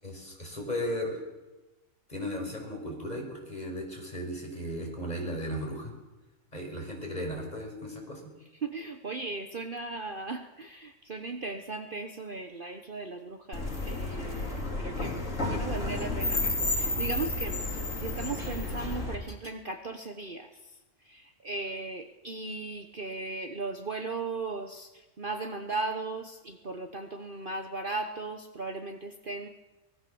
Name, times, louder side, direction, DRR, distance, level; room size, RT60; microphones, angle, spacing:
voice 1, 0.0-1.2 2.1-5.9 6.5-8.2, equal, 30° left, 1 dB, 6.0 m, -36 dB
voice 2, 8.5-15.2 15.4-29.5, right 3 dB, 40° right, 6 dB, 1.3 m, -37 dB
sound 1, 13.5-19.1, left 2 dB, 60° left, 3.8 m, -31 dB
24.0 x 20.5 x 7.1 m, 1.1 s
omnidirectional pair, 1.5 m